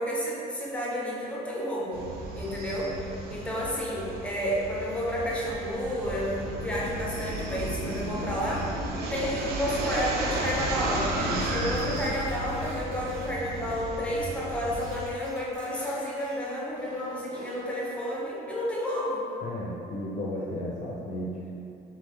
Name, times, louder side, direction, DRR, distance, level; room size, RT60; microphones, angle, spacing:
voice 1, 0.0-2.1 2.3-8.7 9.1-19.2 20.5-20.6, equal, 5° left, -4 dB, 0.8 m, -31 dB
sound 1, 1.9-15.1, right 1 dB, 65° right, 0.6 m, -33 dB
sound 2, 11.7-13.3 13.6-14.5 14.8-16.4 16.7-17.6, right 1 dB, 40° right, 1.2 m, -48 dB
voice 2, 19.4-21.5, left 1 dB, 50° left, -4 dB, 0.6 m, -34 dB
3.6 x 3.4 x 3.1 m, 2.6 s
cardioid pair, 110°, 17 cm